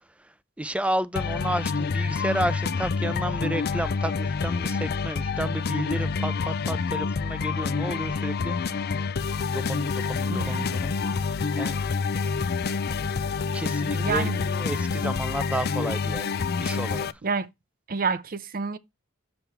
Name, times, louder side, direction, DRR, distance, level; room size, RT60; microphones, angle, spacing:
voice 1, 0.2-8.6 9.5-11.7 13.5-17.1, right 1 dB, 5° right, 0.4 m, -32 dB
sound 1, 1.1-17.1, left 5 dB, 50° left, 0.5 m, -27 dB
voice 2, 10.3-10.7 14.0-14.4 17.2-17.5 17.9-18.8, right 5 dB, 45° right, 0.7 m, -28 dB
7.9 x 5.3 x 4.4 m
head